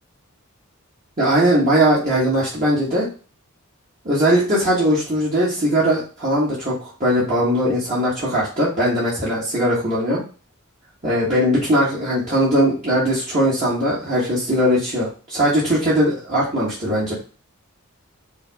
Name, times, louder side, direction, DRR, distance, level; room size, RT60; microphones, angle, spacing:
voice 1, 1.2-3.1 4.0-10.2 11.0-17.1, equal, 35° right, -10 dB, 1.4 m, -19 dB
5.4 x 2.0 x 3.5 m, 0.37 s
head